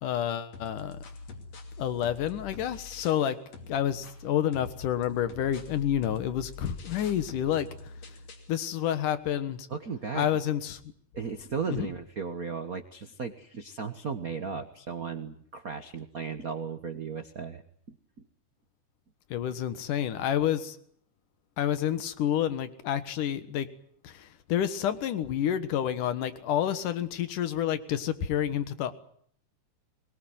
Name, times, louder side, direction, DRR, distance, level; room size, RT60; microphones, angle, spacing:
voice 1, 0.0-1.0 1.8-3.4 3.7-7.9 8.5-9.7 10.1-10.8 11.7-11.9 19.3-20.8 21.6-23.7 24.0-28.9, left 10 dB, 85° left, 12 dB, 3.0 m, -29 dB
sound 1, 0.5-3.3 3.5-8.5, left 4 dB, 55° left, 3.8 m, -45 dB
voice 2, 9.7-10.3 11.1-17.6 17.9-18.0, right 5 dB, 50° right, 7 dB, 1.1 m, -35 dB
22.5 x 21.5 x 9.4 m, 0.63 s
omnidirectional pair, 3.6 m